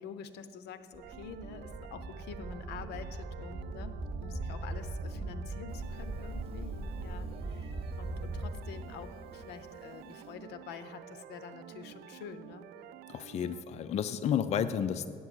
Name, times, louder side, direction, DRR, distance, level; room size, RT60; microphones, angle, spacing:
voice 1, 0.0-12.7 13.3-13.6, left 7 dB, 80° left, 12 dB, 0.7 m, -47 dB
sound 1, 0.9-8.5, right 2 dB, 15° right, 2.3 m, -40 dB
sound 2, 1.0-13.6, right 13 dB, 75° right, 0.4 m, -50 dB
Meow, 5.7-10.4, right 1 dB, 35° right, 1.6 m, -49 dB
voice 2, 13.1-15.1, left 8 dB, 40° left, 12 dB, 0.4 m, -31 dB
8.6 x 8.3 x 7.8 m, 2.7 s
cardioid pair, 110°, 17 cm